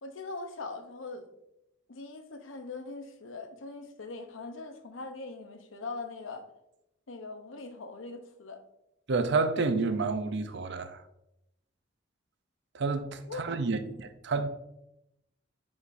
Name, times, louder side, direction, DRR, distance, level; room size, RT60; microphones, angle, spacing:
voice 1, 0.0-1.3 1.9-6.5 7.1-8.6 13.3-13.4 13.8-14.0, left 3 dB, 90° left, 0.8 m, -41 dB
voice 2, 9.1-11.0 12.7-14.5, right 4 dB, 65° right, 0.6 m, -29 dB
8.1 x 5.2 x 2.6 m
head